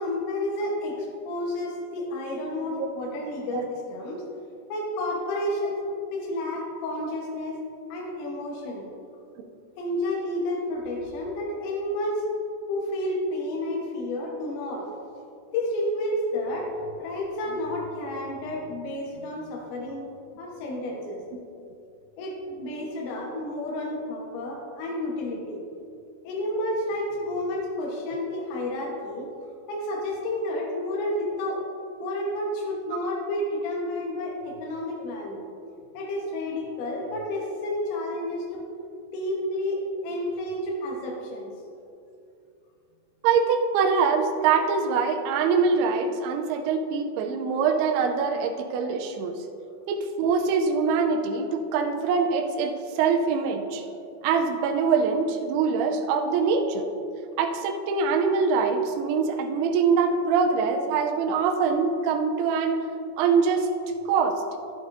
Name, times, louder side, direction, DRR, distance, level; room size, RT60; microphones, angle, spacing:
voice 1, 0.0-4.2 4.7-5.8 6.1-7.6 7.9-8.9 9.8-12.3 12.7-14.9 15.5-16.7 17.0-20.1 20.4-21.2 22.2-25.6 26.3-29.3 29.7-31.6 32.0-35.4 36.0-38.6 39.1-41.5, left 1 dB, 85° left, -2 dB, 3.6 m, -30 dB
voice 2, 43.2-49.4 49.9-53.8 54.2-56.9 57.4-62.9 63.2-63.7 64.1-64.4, right 5 dB, 85° right, 4 dB, 2.4 m, -24 dB
11.5 x 11.0 x 2.6 m, 2.6 s
omnidirectional pair, 5.0 m